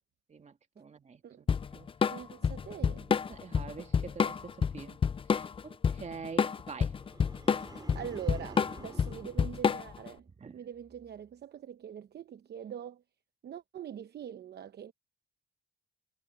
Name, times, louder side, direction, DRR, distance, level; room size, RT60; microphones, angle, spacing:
voice 1, 0.3-1.5 1.7-1.9 2.8-5.0 5.3-7.0 10.4-10.6, right 5 dB, 35° right, 2.0 m, -46 dB
Drum kit / Drum, 1.5-10.1, left 6 dB, 25° left, 0.4 m, -28 dB
voice 2, 2.1-3.0 7.7-10.3 10.5-13.0 13.4-14.9, right 9 dB, 55° right, 0.9 m, -43 dB
sound 1, 7.0-10.4 10.8-11.2, right 3 dB, 20° right, 5.3 m, -51 dB
cardioid pair, 90°, 20 cm